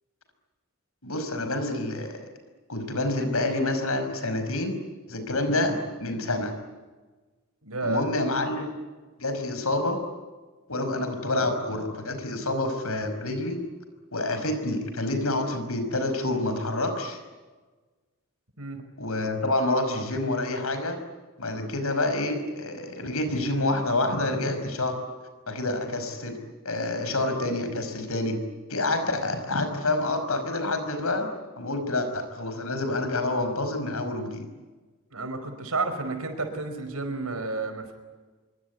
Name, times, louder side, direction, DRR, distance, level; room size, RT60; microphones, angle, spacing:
voice 1, 1.0-2.2 2.7-4.7 5.1-6.5 7.8-8.8 9.2-10.0 10.7-13.6 14.1-17.2 19.0-21.0 21.4-25.0 25.5-26.4 26.7-28.4 28.7-31.3 31.6-34.5, left 2 dB, 75° left, 8 dB, 5.4 m, -28 dB
voice 2, 7.6-8.0 18.6-18.8 35.1-37.9, right 3 dB, 75° right, 8 dB, 5.2 m, -31 dB
26.0 x 24.0 x 9.6 m, 1.3 s
head